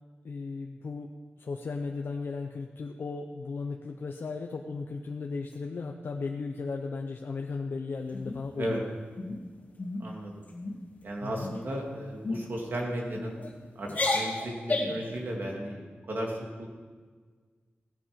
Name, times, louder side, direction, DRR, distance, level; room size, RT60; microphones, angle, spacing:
voice 1, 0.2-8.9 11.2-11.5, left 4 dB, 60° left, 3 dB, 0.7 m, -36 dB
sound 1, 8.1-8.7 9.2-9.4 9.8-10.1 10.4-10.8 11.4-11.8 12.2-12.4 13.1-13.5 13.8-15.1, left 2 dB, 40° left, 2.1 m, -32 dB
voice 2, 10.0-10.3 11.0-13.4 13.8-16.7, right 1 dB, 55° right, -1 dB, 2.6 m, -35 dB
17.0 x 10.0 x 5.2 m, 1.5 s
wide cardioid pair, 170°, 4 cm